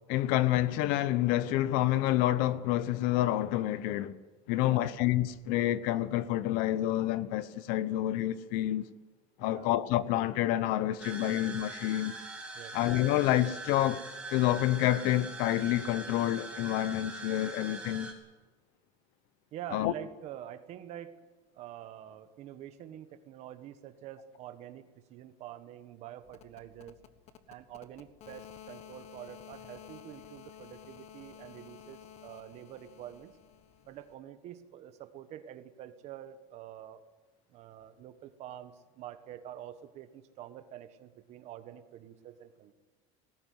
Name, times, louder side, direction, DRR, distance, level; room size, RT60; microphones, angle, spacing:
voice 1, 0.1-4.2 4.5-8.8 9.4-12.1 12.7-14.0 14.3-18.1 19.7-19.9, left 14 dB, 55° left, 1.0 m, -28 dB
voice 2, 4.5-5.0 9.4-9.7 12.5-12.8 19.5-21.1 21.5-24.8 25.1-27.0 27.5-33.3 33.9-37.0 37.5-42.7, right 11 dB, 40° right, 1.4 m, -47 dB
sound 1, 11.0-18.1, right 3 dB, 5° right, 3.1 m, -43 dB
sound 2, 26.2-34.1, left 9 dB, 40° left, 1.3 m, -52 dB
19.5 x 16.0 x 9.4 m
cardioid pair, 165°, 17 cm